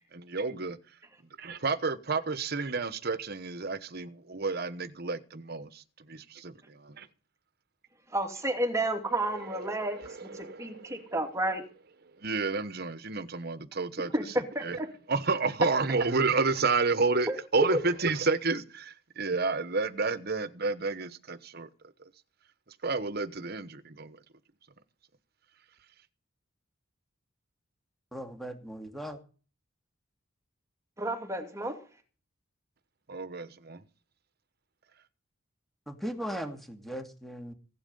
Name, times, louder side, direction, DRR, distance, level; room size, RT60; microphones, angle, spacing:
voice 1, 0.1-0.8 1.4-7.1 9.1-11.1 12.2-14.1 14.6-14.8 15.1-21.7 22.8-24.2 33.1-33.8, right 4 dB, 50° right, 1.1 m, -31 dB
voice 2, 8.1-11.6 14.1-14.9 17.3-17.4 17.7-17.8 31.0-31.8, right 1 dB, 15° right, 2.5 m, -31 dB
voice 3, 28.1-29.2 35.9-37.5, equal, ahead, 2.3 m, -38 dB
16.5 x 11.0 x 5.5 m
head